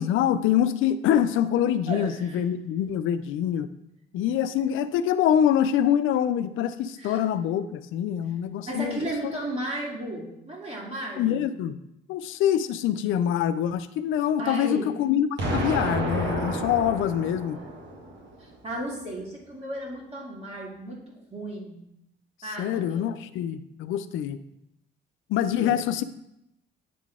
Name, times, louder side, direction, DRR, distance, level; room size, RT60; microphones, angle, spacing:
voice 1, 0.0-3.7 4.1-9.0 11.2-11.8 12.1-17.6 22.6-24.4 25.3-26.0, left 10 dB, 85° left, 12 dB, 0.4 m, -25 dB
voice 2, 1.9-2.4 7.0-7.2 8.6-11.4 14.4-14.9 18.4-21.0 21.3-21.8 22.4-23.1 25.4-25.7, right 1 dB, 30° right, -3 dB, 2.4 m, -34 dB
Explosion, 15.4-18.4, right 1 dB, 65° right, 1.6 m, -30 dB
9.0 x 3.8 x 3.6 m, 0.82 s
cardioid pair, 90°, 20 cm